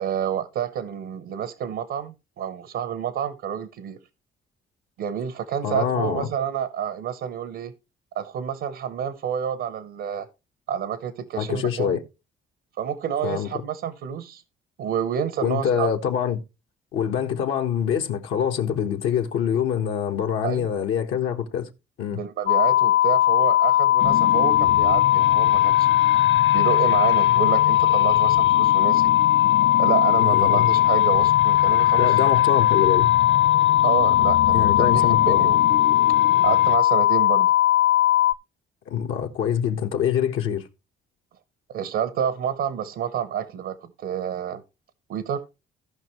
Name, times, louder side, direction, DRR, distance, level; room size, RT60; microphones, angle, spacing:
voice 1, 0.0-4.0 5.0-7.7 8.1-10.3 10.7-12.0 12.8-14.4 14.8-15.9 20.4-20.7 22.1-25.9 26.5-29.1 29.8-32.2 33.8-35.6 36.4-37.5 41.7-44.6 45.1-45.4, right 8 dB, 80° right, 0.9 m, -29 dB
voice 2, 5.6-6.3 11.4-12.0 13.2-13.5 15.4-16.4 16.9-21.7 22.0-22.2 30.2-30.7 32.0-33.1 34.5-35.5 38.9-40.7, left 8 dB, 90° left, 1.4 m, -25 dB
sound 1, 22.5-38.3, left 13 dB, 50° left, 0.5 m, -18 dB
sound 2, 24.0-36.8, left 7 dB, 65° left, 1.1 m, -32 dB
16.5 x 5.5 x 3.1 m
cardioid pair, 90°, 20 cm